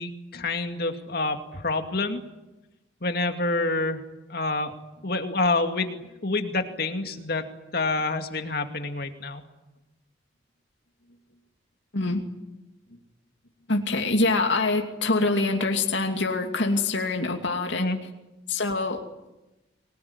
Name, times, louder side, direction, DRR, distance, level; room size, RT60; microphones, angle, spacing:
voice 1, 0.0-2.2 3.0-4.0 4.3-4.7 5.0-7.5 7.7-9.4 17.8-18.0, left 2 dB, 50° left, 6 dB, 2.3 m, -27 dB
voice 2, 13.7-17.9 18.5-19.0, left 3 dB, 70° left, 3 dB, 2.7 m, -25 dB
24.5 x 20.0 x 9.7 m, 1.0 s
head